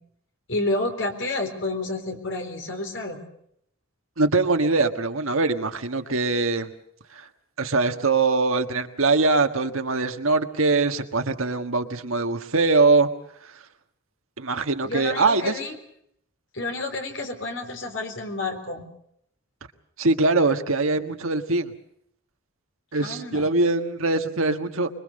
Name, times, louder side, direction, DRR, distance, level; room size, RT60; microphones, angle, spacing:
voice 1, 0.5-3.2 14.8-15.7 16.5-18.9 23.0-23.5, left 2 dB, 60° left, 4 dB, 3.9 m, -30 dB
voice 2, 4.2-6.7 7.1-7.3 7.6-13.1 13.4-13.5 14.4-15.6 20.0-21.7 22.9-24.9, right 3 dB, 85° right, 7 dB, 1.6 m, -22 dB
25.0 x 22.0 x 6.6 m, 0.70 s
head